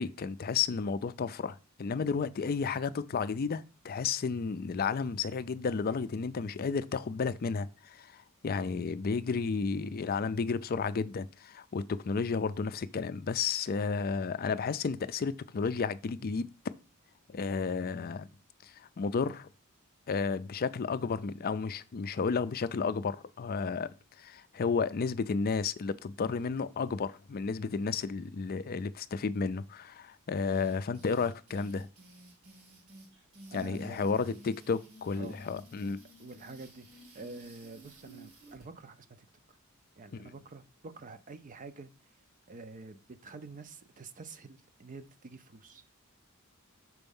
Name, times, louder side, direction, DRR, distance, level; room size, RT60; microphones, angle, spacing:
voice 1, 0.0-16.5 17.3-18.3 18.6-19.5 20.1-23.9 24.2-31.9 33.5-36.0 40.1-40.3, left 5 dB, 45° left, 0.4 m, -32 dB
sound 1, 30.4-38.7, right 1 dB, 90° right, 2.1 m, -53 dB
voice 2, 33.5-34.4 35.1-35.4 36.2-39.1 40.0-41.9 42.5-45.8, right 3 dB, 35° right, 0.5 m, -47 dB
6.1 x 4.4 x 5.4 m
head